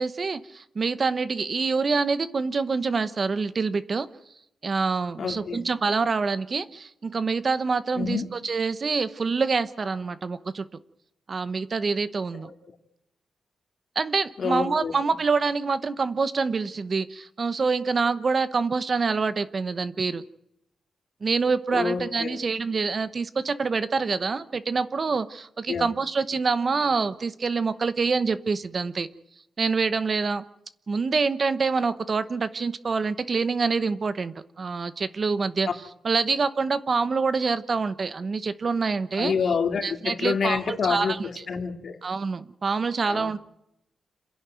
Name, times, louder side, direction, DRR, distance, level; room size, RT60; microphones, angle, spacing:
voice 1, 0.0-4.1 4.6-10.7 11.3-12.5 14.0-20.2 21.2-29.1 29.6-30.4 30.9-35.7 36.0-39.3 39.8-41.2 42.0-43.4, right 4 dB, 40° right, 14 dB, 0.9 m, -26 dB
voice 2, 5.2-5.6 8.0-8.3 12.4-12.5 14.4-14.9 21.7-22.4 25.7-25.8 39.2-42.0 43.1-43.3, left 5 dB, 60° left, 6 dB, 2.3 m, -27 dB
27.5 x 11.0 x 9.2 m, 0.79 s
wide cardioid pair, 115°, 0 cm